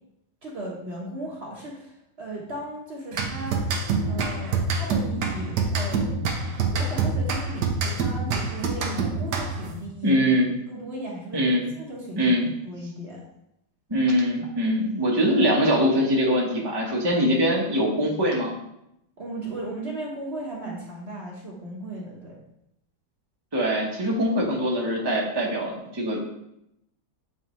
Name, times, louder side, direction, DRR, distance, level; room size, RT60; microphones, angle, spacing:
voice 1, 0.4-3.6 4.1-6.2 6.7-10.2 10.7-11.5 11.7-12.4 12.6-13.2 19.2-22.4, right 1 dB, 45° right, -3 dB, 1.3 m, -36 dB
sound 1, 3.1-9.8, right 4 dB, 80° right, 1.5 m, -26 dB
voice 2, 10.0-10.5 11.3-11.7 12.2-12.5 13.9-18.5 23.5-26.2, equal, 15° right, -3 dB, 1.0 m, -23 dB
7.9 x 4.2 x 3.1 m, 0.80 s
omnidirectional pair, 1.7 m